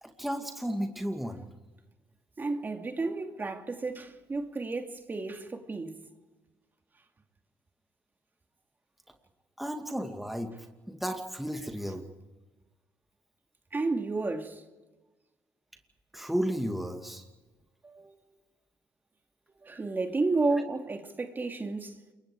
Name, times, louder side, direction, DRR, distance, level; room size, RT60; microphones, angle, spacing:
voice 1, 0.0-1.4 9.6-10.5 10.9-12.0 16.1-17.2 20.5-20.6, equal, ahead, 2.4 m, -33 dB
voice 2, 2.4-6.0 13.7-14.6 17.8-18.2 19.6-22.0, right 3 dB, 30° right, 2.7 m, -32 dB
28.5 x 22.5 x 4.9 m
cardioid pair, 80°, 7 cm